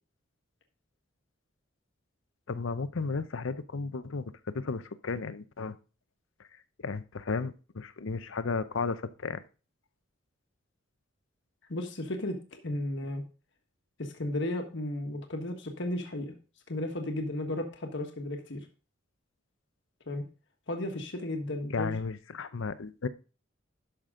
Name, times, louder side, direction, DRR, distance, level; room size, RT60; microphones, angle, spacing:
voice 1, 2.5-5.8 6.4-6.5 6.8-9.4 21.7-23.1, left 4 dB, 85° left, 14 dB, 0.7 m, -34 dB
voice 2, 11.7-13.2 14.0-16.3 16.7-18.6 20.1-20.2 20.7-21.9, left 1 dB, 65° left, 4 dB, 1.4 m, -34 dB
11.5 x 6.0 x 3.7 m, 0.34 s
head